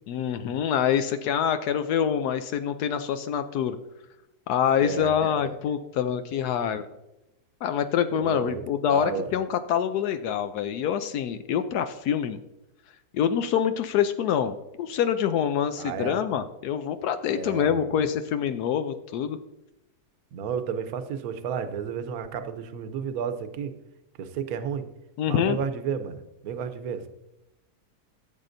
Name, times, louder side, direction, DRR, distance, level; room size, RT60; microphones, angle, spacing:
voice 1, 0.1-3.8 4.5-6.9 7.6-12.4 13.1-19.4 25.2-25.6, left 8 dB, 80° left, 9 dB, 1.1 m, -26 dB
voice 2, 4.8-5.6 8.1-9.3 15.8-16.2 17.3-18.0 20.3-23.7 24.2-24.9 25.3-27.1, right 7 dB, 70° right, 9 dB, 1.2 m, -32 dB
14.5 x 7.4 x 2.6 m, 0.94 s
omnidirectional pair, 1.7 m